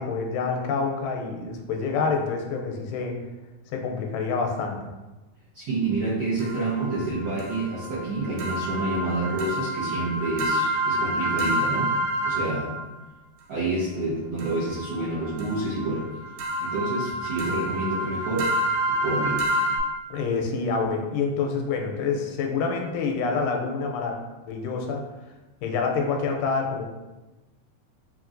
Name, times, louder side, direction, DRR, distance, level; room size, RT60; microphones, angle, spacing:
voice 1, 0.0-3.2 3.7-4.9 20.1-24.2 24.5-25.0 25.6-26.8, left 4 dB, 90° left, 3 dB, 2.2 m, -27 dB
voice 2, 5.5-11.9 12.2-12.7 13.5-16.1 16.6-18.5 18.9-19.5, right 2 dB, 70° right, -11 dB, 1.3 m, -28 dB
sound 1, 6.4-12.8 14.4-19.8, right 1 dB, 85° right, 2.3 m, -28 dB
5.0 x 3.0 x 2.5 m, 1.1 s
omnidirectional pair, 3.7 m